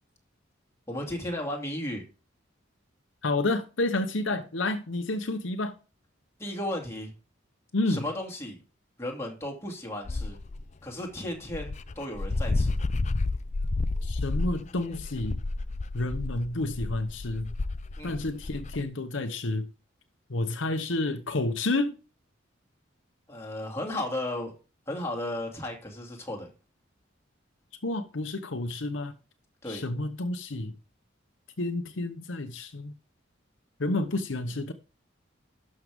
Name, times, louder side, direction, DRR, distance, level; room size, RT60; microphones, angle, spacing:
voice 1, 0.9-2.0 6.4-7.1 7.9-8.6 9.0-10.4 10.8-12.8 18.0-18.2 23.3-24.5 24.9-26.5 29.6-29.8, left 1 dB, 15° left, 2.5 m, -34 dB
voice 2, 3.2-5.7 7.7-8.0 14.0-15.4 15.9-17.5 18.0-19.7 20.3-22.0 27.8-29.1 29.7-30.7 31.6-32.9 33.8-34.7, left 2 dB, 70° left, 0.9 m, -30 dB
Dog, 10.1-10.6 11.2-11.3 11.5-18.8, left 2 dB, 35° left, 0.5 m, -30 dB
12.0 x 6.5 x 3.6 m
head